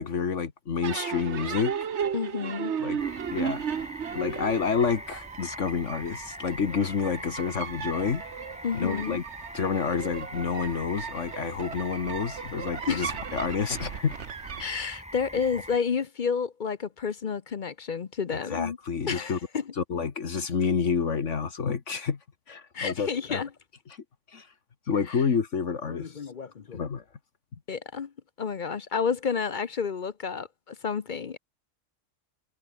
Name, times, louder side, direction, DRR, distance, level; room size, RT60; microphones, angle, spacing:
voice 1, 0.0-1.7 2.8-3.0 3.3-3.6 4.1-8.2 8.7-9.2 9.5-14.1 18.5-19.4 19.8-22.2 22.5-23.4 24.3-24.5 24.9-26.1 26.7-27.0, left 6 dB, 70° left, 1.8 m, -29 dB
sound 1, 0.8-14.6, right 7 dB, 65° right, 1.4 m, -35 dB
voice 2, 2.1-2.7 8.6-9.2 12.9-13.1 14.6-18.8 19.1-19.6 22.7-23.5 25.1-25.2 25.9-26.8 27.7-28.1 28.4-31.4, left 6 dB, 45° left, 0.8 m, -30 dB
sound 2, 3.0-15.8, equal, 5° right, 4.6 m, -43 dB
omnidirectional pair, 1.3 m